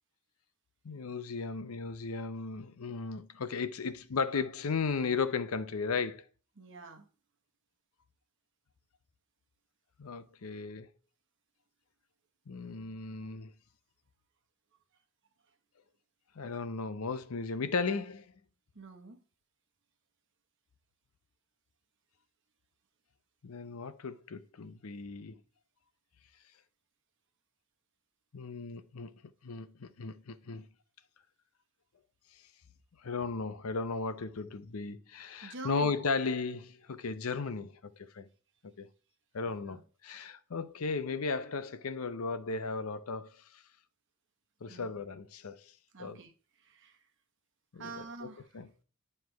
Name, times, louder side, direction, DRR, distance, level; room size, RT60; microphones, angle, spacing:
voice 1, 0.8-6.2 10.0-10.9 12.5-13.5 16.4-18.2 23.4-25.4 28.3-29.1 29.4-30.7 33.0-38.3 38.8-38.9 39.3-43.6 44.6-45.6 46.0-46.2 47.7-48.3 48.5-48.8, left 4 dB, 80° left, 0.6 m, -36 dB
voice 2, 6.6-7.1 18.7-19.2 35.4-35.9 39.5-39.8 44.7-44.9 45.9-46.3 46.6-47.0 47.8-48.6, right 3 dB, 60° right, 1.1 m, -46 dB
9.4 x 3.3 x 4.5 m
head